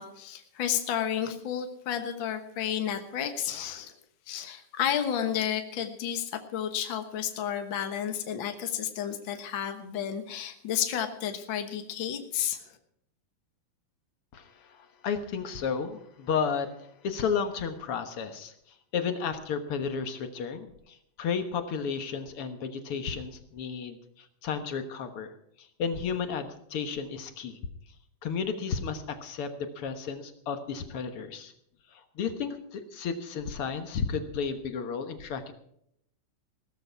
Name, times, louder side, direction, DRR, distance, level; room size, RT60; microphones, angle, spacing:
voice 1, 0.0-3.9 4.3-12.8, left 9 dB, 85° left, 7 dB, 1.0 m, -31 dB
voice 2, 14.3-18.5 18.9-25.3 25.6-27.6 28.2-31.5 31.9-35.5, left 6 dB, 60° left, 8 dB, 1.5 m, -33 dB
17.0 x 14.0 x 4.6 m, 0.72 s
omnidirectional pair, 4.2 m